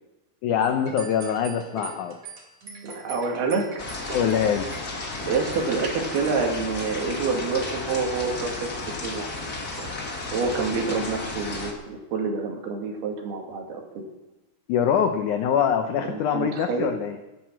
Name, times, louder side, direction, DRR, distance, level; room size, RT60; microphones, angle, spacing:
voice 1, 0.4-2.2 4.1-4.7 14.7-17.2, left 8 dB, 85° left, 7 dB, 1.7 m, -24 dB
sound 1, 0.6-11.2, right 3 dB, 45° right, 3.1 m, -43 dB
voice 2, 2.8-3.8 5.3-9.4 10.3-14.1 16.1-16.9, right 4 dB, 70° right, 1 dB, 4.2 m, -27 dB
sound 2, 3.8-11.7, left 3 dB, 35° left, 1.7 m, -33 dB
13.5 x 11.5 x 7.3 m, 1.0 s
omnidirectional pair, 4.7 m